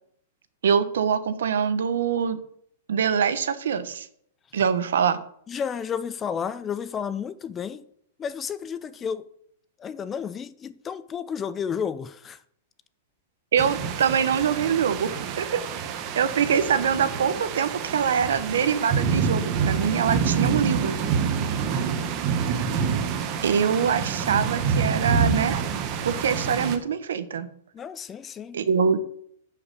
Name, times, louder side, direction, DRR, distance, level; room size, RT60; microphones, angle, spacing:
voice 1, 0.6-2.4 2.9-4.1 4.5-5.2 13.5-15.6 16.1-21.0 23.4-25.6 26.0-27.5 28.5-29.0, right 7 dB, 85° right, 1.2 m, -24 dB
voice 2, 5.5-7.8 8.2-9.3 9.8-12.4 26.3-26.7 27.7-28.6, left 7 dB, 15° left, 0.4 m, -32 dB
sound 1, 13.6-26.8, right 6 dB, 30° right, 1.0 m, -27 dB
10.5 x 5.8 x 6.8 m
supercardioid pair, 170°, 0 cm